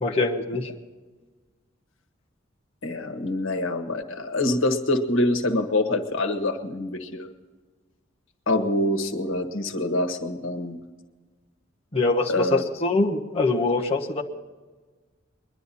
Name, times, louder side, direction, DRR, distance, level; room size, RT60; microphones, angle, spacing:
voice 1, 0.0-0.7 11.9-14.2, left 3 dB, 30° left, -1 dB, 1.2 m, -24 dB
voice 2, 2.8-7.3 8.5-10.8 12.3-12.6, left 1 dB, 85° left, 6 dB, 1.4 m, -25 dB
22.0 x 11.5 x 4.2 m, 1.3 s
head